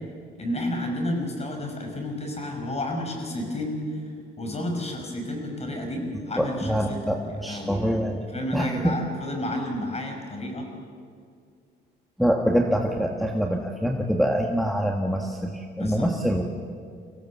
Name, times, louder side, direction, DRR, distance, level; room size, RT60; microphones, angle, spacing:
voice 1, 0.4-3.8 4.4-7.0 7.4-7.8 8.3-10.7 15.8-16.1, left 1 dB, 30° left, 3 dB, 5.2 m, -31 dB
voice 2, 6.4-8.2 8.5-9.0 12.2-16.5, equal, ahead, 1 dB, 1.5 m, -25 dB
24.0 x 16.5 x 7.2 m, 2.2 s
cardioid pair, 90°, 20 cm